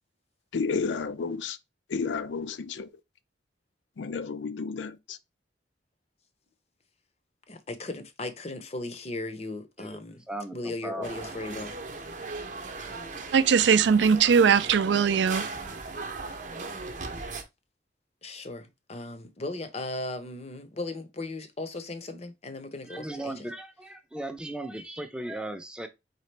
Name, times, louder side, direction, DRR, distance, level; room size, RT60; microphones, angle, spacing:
voice 1, 0.5-1.6 1.9-2.9 4.0-5.2, left 5 dB, 80° left, 0.4 m, -31 dB
voice 2, 7.5-10.2 10.5-11.7 18.2-23.5, left 2 dB, 35° left, 0.6 m, -37 dB
voice 3, 10.3-11.3 22.9-25.9, right 1 dB, 5° right, 0.5 m, -37 dB
sound 1, 11.0-17.4, right 3 dB, 45° right, 0.7 m, -38 dB
voice 4, 13.3-15.4, right 6 dB, 75° right, 0.4 m, -20 dB
4.1 x 3.7 x 3.2 m
head